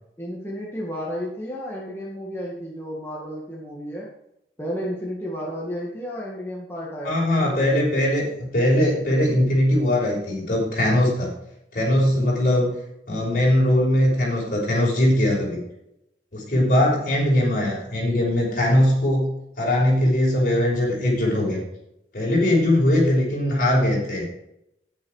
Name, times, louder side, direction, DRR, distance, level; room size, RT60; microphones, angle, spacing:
voice 1, 0.2-4.1 4.6-7.6, equal, 15° left, -5 dB, 2.0 m, -32 dB
voice 2, 7.0-11.3 11.7-12.7 13.1-15.6 16.3-19.3 19.6-21.6 22.1-24.3, left 1 dB, 50° left, -4 dB, 5.6 m, -20 dB
10.5 x 10.0 x 4.9 m, 0.81 s
head